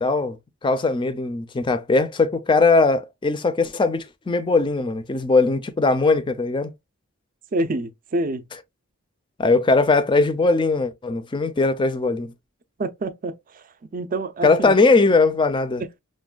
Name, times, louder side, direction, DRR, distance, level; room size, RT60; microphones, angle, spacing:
voice 1, 0.0-6.7 9.4-12.3 14.4-15.8, left 3 dB, 20° left, 0.4 m, -20 dB
voice 2, 7.5-8.5 12.8-13.6 13.9-14.7 15.8-16.0, right 2 dB, 40° right, 0.5 m, -27 dB
6.1 x 2.2 x 2.3 m
head